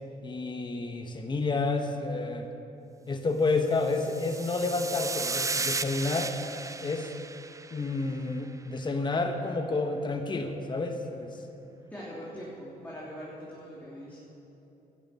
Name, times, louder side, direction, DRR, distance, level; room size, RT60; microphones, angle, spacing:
voice 1, 0.2-2.5 3.1-6.3 6.8-7.1 7.7-11.4, left 3 dB, 30° left, 5 dB, 1.2 m, -30 dB
sound 1, 3.8-8.3, right 3 dB, 20° right, 0.5 m, -35 dB
voice 2, 11.9-14.2, equal, 10° left, -7 dB, 3.2 m, -42 dB
12.0 x 10.5 x 8.4 m, 2.9 s
cardioid pair, 85°, 16 cm